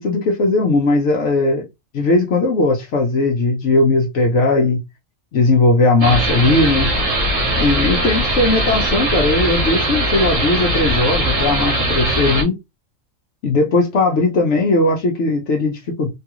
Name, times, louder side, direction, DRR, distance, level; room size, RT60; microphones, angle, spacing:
voice 1, 0.0-1.7 1.9-4.8 5.3-6.9 7.6-12.5 13.4-16.1, left 2 dB, 65° left, 1.0 m, -17 dB
sound 1, 6.0-12.4, right 1 dB, 75° right, 1.4 m, -20 dB
3.4 x 2.3 x 2.9 m
omnidirectional pair, 1.4 m